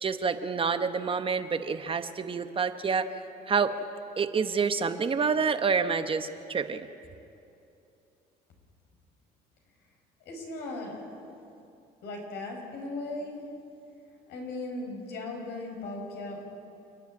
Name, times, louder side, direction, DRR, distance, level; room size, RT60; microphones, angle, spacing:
voice 1, 0.0-3.1 3.5-3.8 4.2-6.9, right 5 dB, 30° right, 9 dB, 0.9 m, -28 dB
voice 2, 10.3-11.0 12.0-13.4 14.3-16.5, left 2 dB, 85° left, 1 dB, 5.3 m, -37 dB
28.5 x 10.5 x 9.5 m, 2.7 s
cardioid pair, 110°, 17 cm